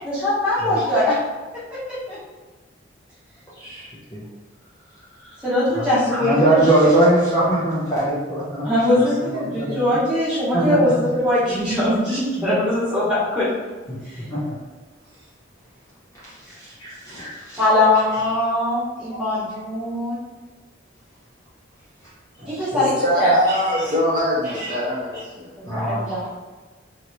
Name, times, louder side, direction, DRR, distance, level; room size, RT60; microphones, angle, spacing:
voice 1, 0.0-1.2 1.9-2.2 5.2-7.0 8.6-13.5 14.0-14.3 17.6-20.2 22.4-22.9 23.2-23.4 25.6-26.2, left 1 dB, 5° right, -11 dB, 1.3 m, -21 dB
voice 2, 3.6-4.2 5.7-5.9 6.2-8.7 9.0-9.8 10.5-10.9 14.3-14.4 16.2-17.6 17.9-18.0 22.4-22.9 24.5-24.7 25.7-26.2, right 1 dB, 15° left, -9 dB, 0.7 m, -22 dB
voice 3, 22.8-25.5 25.8-26.1, equal, 45° right, -7 dB, 0.8 m, -23 dB
3.0 x 2.8 x 2.5 m, 1.3 s
head